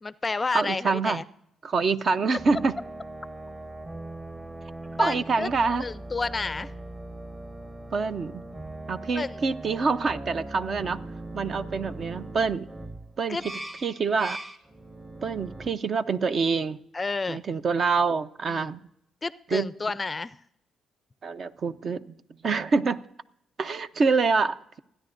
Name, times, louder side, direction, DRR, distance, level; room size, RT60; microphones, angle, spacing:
voice 1, 0.0-1.2 5.0-5.5 5.8-6.7 9.1-9.4 13.3-13.5 16.9-17.4 18.5-18.7 19.2-20.3, left 3 dB, 25° left, 0.4 m, -30 dB
voice 2, 0.5-1.2 1.6-2.7 5.0-5.8 7.9-8.4 8.9-11.0 11.3-12.7 13.2-13.4 13.8-14.4 15.2-16.8 17.3-18.8 19.5-19.7 21.2-22.0 22.4-23.0 23.6-24.8, right 4 dB, 50° right, 0.6 m, -26 dB
sound 1, 2.3-15.7, right 2 dB, 30° right, 1.5 m, -40 dB
28.5 x 10.0 x 2.6 m
cardioid pair, 90°, 0 cm